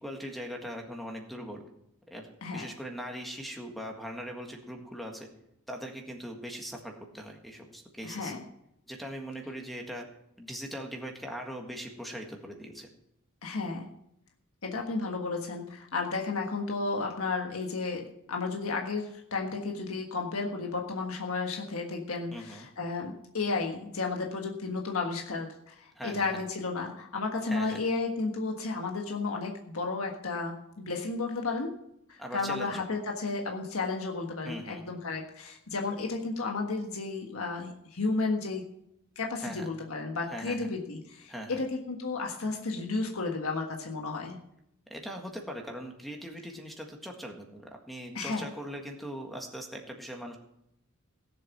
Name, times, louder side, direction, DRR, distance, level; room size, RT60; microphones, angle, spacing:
voice 1, 0.0-1.6 2.1-2.3 2.5-5.3 5.7-8.4 8.9-10.1 10.4-12.9 22.3-22.7 25.9-26.4 27.5-27.8 32.2-32.8 34.4-35.0 39.4-39.7 40.3-40.7 41.3-41.6 44.9-50.4, equal, ahead, 2 dB, 1.7 m, -40 dB
voice 2, 8.0-8.4 13.4-13.9 14.6-31.7 32.1-38.6 39.1-44.4 48.1-48.4, left 3 dB, 75° left, 1 dB, 1.5 m, -33 dB
17.0 x 7.7 x 5.9 m, 0.78 s
head